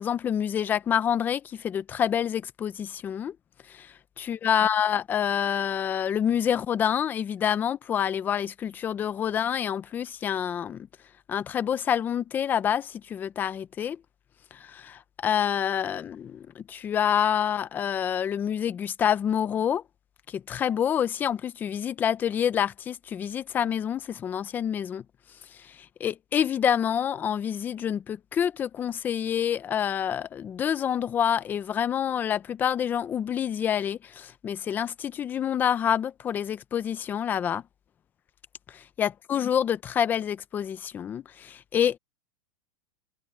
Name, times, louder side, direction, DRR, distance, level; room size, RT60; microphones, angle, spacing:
voice 1, 0.0-3.3 3.7-10.9 11.3-14.0 14.5-19.8 20.3-25.0 25.7-37.6 38.7-42.0, left 9 dB, 15° left, 0.7 m, -27 dB
supercardioid pair, 160°, 11 cm